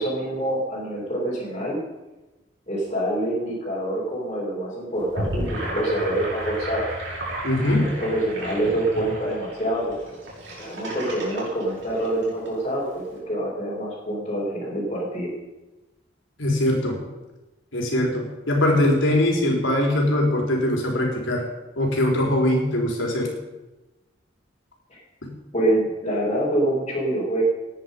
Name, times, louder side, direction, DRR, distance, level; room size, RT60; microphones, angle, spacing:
voice 1, 0.0-1.8 2.7-6.9 7.6-10.2 10.6-15.3 24.9-25.0 25.5-27.4, right 1 dB, 30° left, -8 dB, 4.7 m, -26 dB
Gurgling / Sink (filling or washing), 5.0-12.5, right 1 dB, 70° right, 6.4 m, -33 dB
voice 2, 7.4-7.9 16.4-17.0 17.7-21.5 21.8-23.3 25.2-25.3, left 1 dB, 85° left, 0 dB, 4.5 m, -22 dB
18.5 x 10.0 x 5.5 m, 1.1 s
head